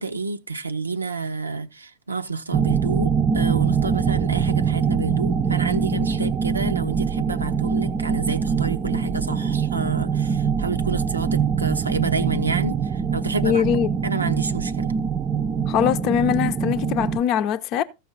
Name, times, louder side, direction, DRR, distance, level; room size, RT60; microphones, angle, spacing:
voice 1, 0.0-13.7 14.0-14.9, right 4 dB, 85° right, 0.7 m, -29 dB
sound 1, 2.5-17.2, right 6 dB, 25° right, 0.6 m, -23 dB
voice 2, 13.4-13.9 15.7-17.8, left 9 dB, 45° left, 0.6 m, -22 dB
14.5 x 5.6 x 4.0 m
figure-of-eight pair, 90°, 0 cm